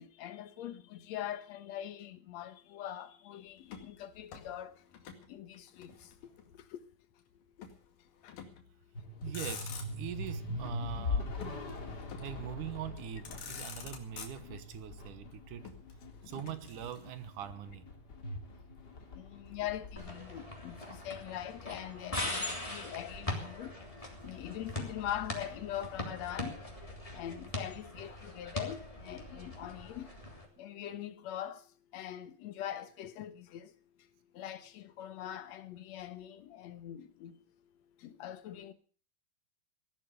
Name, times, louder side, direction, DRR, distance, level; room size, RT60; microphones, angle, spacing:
voice 1, 0.0-4.7 5.3-6.1 6.7-6.8 8.2-8.3 19.1-23.7 24.2-26.6 27.1-30.1 30.6-31.6 31.9-33.7 34.3-37.4 38.0-38.7, left 11 dB, 65° left, 2.1 m, -42 dB
Motor vehicle (road), 3.6-5.3 5.5-6.6 7.6-7.8 8.3-8.7 9.1-10.2 11.4-12.5 13.0-13.1 13.2-14.8 15.6-17.3, left 7 dB, 90° left, 3.8 m, -48 dB
sound 1, 8.9-21.5, left 2 dB, 35° left, 2.6 m, -42 dB
voice 2, 9.2-11.4 12.2-15.7 16.3-17.8, right 10 dB, 80° right, 2.6 m, -43 dB
sound 2, 20.0-30.4, left 1 dB, 10° left, 2.9 m, -41 dB
17.0 x 12.0 x 6.7 m
omnidirectional pair, 3.7 m